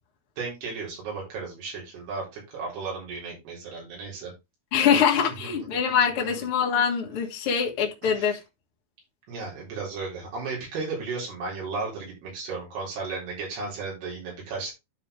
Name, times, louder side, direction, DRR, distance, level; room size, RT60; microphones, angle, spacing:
voice 1, 0.4-4.3 4.8-5.0 5.4-5.5 6.2-6.4 8.0-8.3 9.3-14.7, right 4 dB, 80° right, 6.0 m, -34 dB
voice 2, 4.7-8.4, left 7 dB, 45° left, 2.0 m, -24 dB
12.0 x 4.6 x 3.4 m
omnidirectional pair, 4.6 m